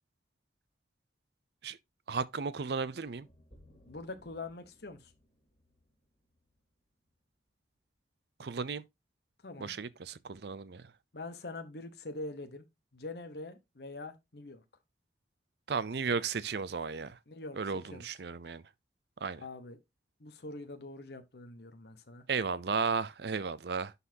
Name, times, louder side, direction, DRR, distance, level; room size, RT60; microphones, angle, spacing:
voice 1, 2.1-3.3 8.4-8.8 9.6-10.8 15.7-17.2 17.5-18.6 19.2-19.4 22.3-23.9, right 5 dB, 60° right, 0.5 m, -34 dB
sound 1, 3.1-7.2, equal, 35° left, 2.5 m, -63 dB
voice 2, 3.9-5.1 9.4-9.7 11.1-12.6 12.9-14.6 17.3-17.6 17.9-18.1 19.4-19.8 20.2-22.2, left 2 dB, 60° left, 1.0 m, -44 dB
11.0 x 4.1 x 2.8 m
head